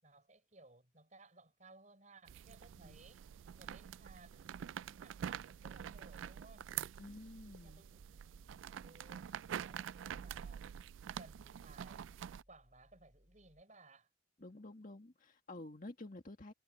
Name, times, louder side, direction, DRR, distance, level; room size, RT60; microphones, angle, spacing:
voice 1, 0.0-3.3 3.6-4.5 4.9-6.7 7.6-8.4 8.8-9.3 9.6-10.7 11.2-12.1 12.5-14.1, right 2 dB, 40° right, 6.1 m, -61 dB
sound 1, 2.3-12.4, right 9 dB, 85° right, 0.3 m, -46 dB
voice 2, 7.0-7.8 14.4-16.5, left 2 dB, 45° left, 1.8 m, -51 dB
sound 2, 7.4-13.6, equal, 5° left, 2.9 m, -70 dB
head